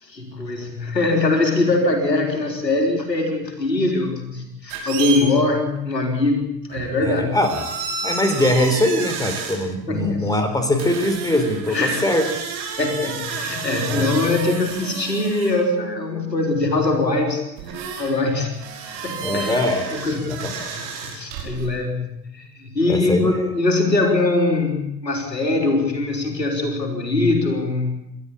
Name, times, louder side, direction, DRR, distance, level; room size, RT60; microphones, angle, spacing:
voice 1, 0.0-7.4 9.6-10.3 11.7-12.0 12.8-18.5 19.0-19.6 19.9-20.4 21.0-28.0, left 2 dB, 80° left, 3 dB, 3.9 m, -22 dB
sound 1, 4.7-5.3 6.7-7.0 7.3-9.6 10.8-15.7 16.8-16.9 17.6-18.2 18.5-21.7, right 5 dB, 55° right, 5.7 m, -31 dB
voice 2, 7.0-7.7 8.0-12.2 13.9-14.1 19.2-20.8 22.9-23.5, left 1 dB, 5° left, 6 dB, 3.9 m, -22 dB
29.0 x 13.0 x 8.7 m, 0.85 s
figure-of-eight pair, 75°, 49 cm